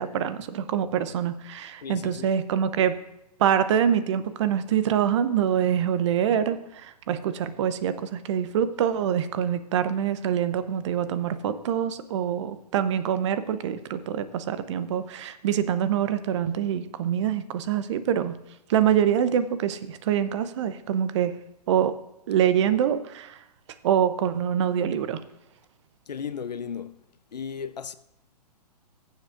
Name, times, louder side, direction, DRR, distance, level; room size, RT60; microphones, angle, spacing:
voice 1, 0.0-3.0 3.4-18.4 18.7-21.4 21.7-21.9 22.3-23.4 23.8-25.2, right 9 dB, 45° right, 0.7 m, -25 dB
voice 2, 1.8-2.3 26.1-27.0 27.3-27.9, left 7 dB, 80° left, 0.6 m, -35 dB
21.0 x 7.2 x 2.5 m
figure-of-eight pair, 125°, 21 cm